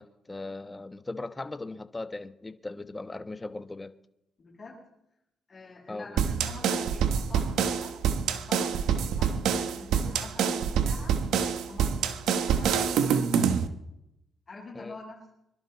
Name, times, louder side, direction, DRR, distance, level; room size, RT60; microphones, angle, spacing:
voice 1, 0.0-3.9 5.9-6.2 14.7-14.9, left 2 dB, 20° left, 10 dB, 1.0 m, -38 dB
voice 2, 4.4-4.8 5.5-11.2 11.7-13.6 14.5-15.3, left 3 dB, 35° left, -3 dB, 7.9 m, -46 dB
sound 1, 6.2-13.7, right 7 dB, 80° right, 1.1 m, -26 dB
25.5 x 11.5 x 4.1 m, 0.85 s
cardioid pair, 90°, 0 cm